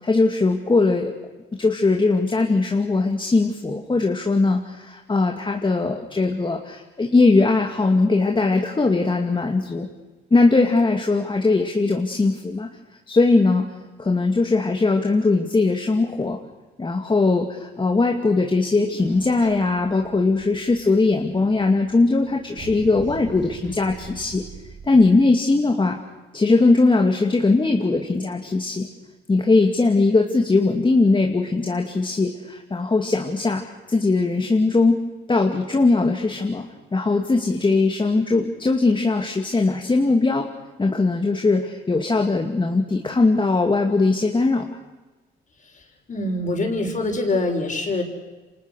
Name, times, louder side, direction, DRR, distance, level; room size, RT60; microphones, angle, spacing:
voice 1, 0.0-1.1 1.6-9.9 10.3-12.7 13.1-13.7 14.0-16.4 16.8-24.4 24.8-26.0 26.3-28.9 29.3-33.6 33.9-35.0 35.3-36.7 36.9-40.5 40.8-44.7, left 3 dB, 25° left, 3 dB, 2.4 m, -20 dB
sound 1, 19.0-25.1, right 6 dB, 70° right, 4.7 m, -42 dB
voice 2, 46.1-48.0, left 2 dB, 40° left, 3 dB, 6.4 m, -24 dB
29.0 x 26.5 x 6.5 m, 1.2 s
cardioid pair, 90°, 20 cm